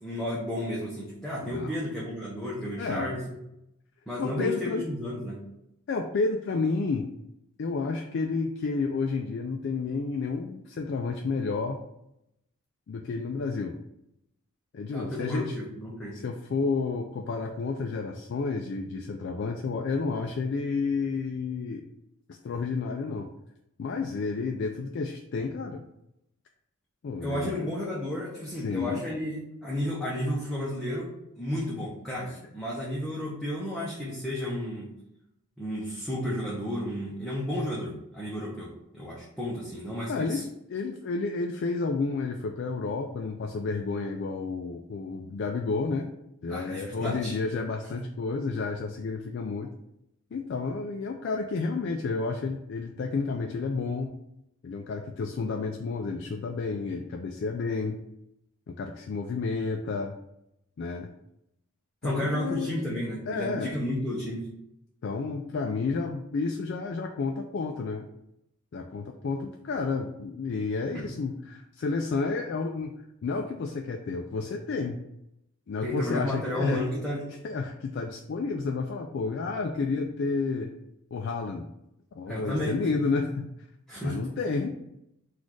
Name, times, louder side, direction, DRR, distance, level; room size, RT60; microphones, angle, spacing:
voice 1, 0.0-3.2 4.1-5.4 14.9-16.2 27.2-34.9 35.6-40.4 46.5-47.4 62.0-64.5 70.9-71.0 75.8-77.4 82.3-82.8 83.9-84.3, left 1 dB, ahead, -7 dB, 0.7 m, -32 dB
voice 2, 2.8-3.1 4.2-4.8 5.9-7.1 7.6-11.8 12.9-13.8 14.7-15.6 16.1-21.8 22.3-23.3 23.8-25.8 27.0-27.7 28.6-29.0 32.2-32.4 40.1-40.4 40.7-46.1 46.4-49.7 50.3-54.1 54.6-58.0 58.7-60.1 60.8-61.1 62.0-62.7 63.3-63.8 65.0-68.1 68.7-72.9 73.2-75.0 75.7-76.8 77.4-80.7 81.1-81.7 82.2-83.3 84.0-84.7, left 4 dB, 55° left, 3 dB, 0.3 m, -31 dB
4.1 x 2.4 x 4.6 m, 0.83 s
head